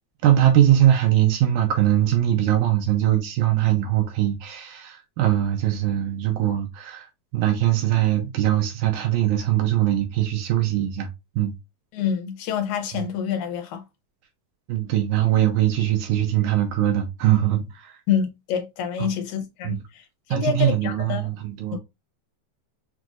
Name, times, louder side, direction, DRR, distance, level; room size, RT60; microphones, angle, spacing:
voice 1, 0.2-11.1 11.4-11.5 14.7-17.9 19.0-19.1 19.6-19.8 20.3-21.8, right 12 dB, 80° right, 2.0 m, -21 dB
voice 2, 11.9-13.8 18.1-19.8 20.3-21.3 21.7-21.8, left 8 dB, 75° left, 2.2 m, -27 dB
6.0 x 2.5 x 2.3 m
omnidirectional pair, 3.7 m